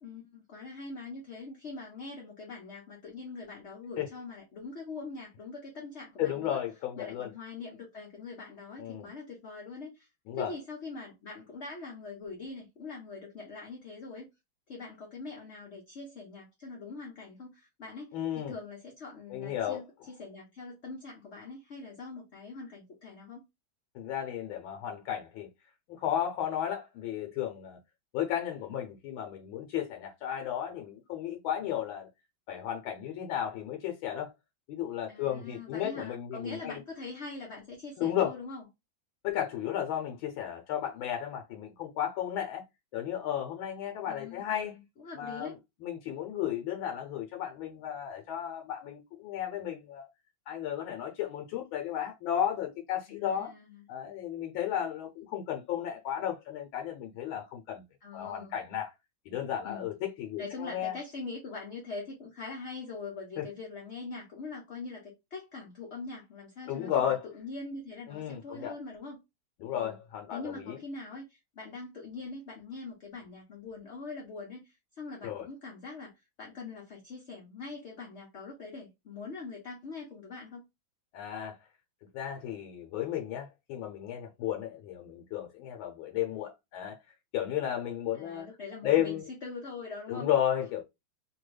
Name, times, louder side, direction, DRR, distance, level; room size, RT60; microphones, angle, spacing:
voice 1, 0.0-6.6 7.0-10.1 10.3-14.3 14.7-23.4 35.1-38.7 44.1-45.5 53.1-53.8 58.0-58.6 59.6-59.9 60.4-69.2 69.7-70.0 70.3-80.6 88.1-90.3, left 3 dB, 60° left, 0.7 m, -43 dB
voice 2, 6.2-7.3 8.8-9.1 10.3-10.5 18.1-18.5 19.3-19.8 23.9-25.5 26.0-27.8 28.1-32.1 32.5-34.3 34.7-36.8 38.0-38.4 39.2-42.6 42.9-44.8 45.2-45.5 45.8-50.1 50.5-53.5 53.9-57.8 58.1-58.9 59.3-61.0 63.4-63.5 66.7-67.2 68.1-68.7 69.6-70.8 75.2-75.5 81.1-81.6 82.1-87.0 87.3-88.5 88.8-89.3 90.1-90.8, left 10 dB, 85° left, 1.4 m, -33 dB
3.4 x 2.2 x 3.1 m
omnidirectional pair, 2.1 m